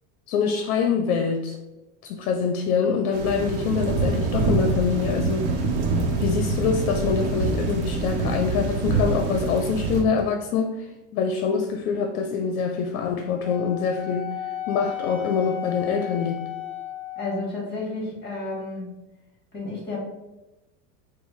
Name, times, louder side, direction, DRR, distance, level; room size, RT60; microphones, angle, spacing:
voice 1, 0.3-1.6 2.0-5.7 6.2-14.3 14.7-16.4, left 6 dB, 75° left, 0.5 m, -25 dB
sound 1, 3.1-10.0, right 3 dB, 80° right, 0.8 m, -25 dB
Wind instrument woodwind instrument, 13.4-17.6, left 11 dB, 5° right, 0.4 m, -34 dB
voice 2, 17.2-18.9 19.5-20.0, left 2 dB, 25° left, 1.2 m, -31 dB
4.1 x 2.0 x 2.9 m
supercardioid pair, 115°, 42 cm